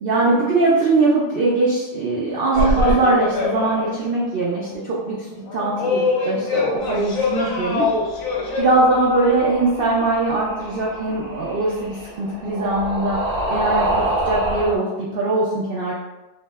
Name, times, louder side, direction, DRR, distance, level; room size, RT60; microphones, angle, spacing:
voice 1, 0.0-7.9 8.6-13.2 13.5-15.9, right 2 dB, 90° right, -5 dB, 0.5 m, -21 dB
sound 1, 2.5-4.1 4.4-4.5 5.4-8.6, left 3 dB, 70° left, 1.0 m, -23 dB
sound 2, 8.1-14.8, right 1 dB, 65° right, 0.9 m, -27 dB
2.7 x 2.0 x 3.3 m, 1.1 s
omnidirectional pair, 1.6 m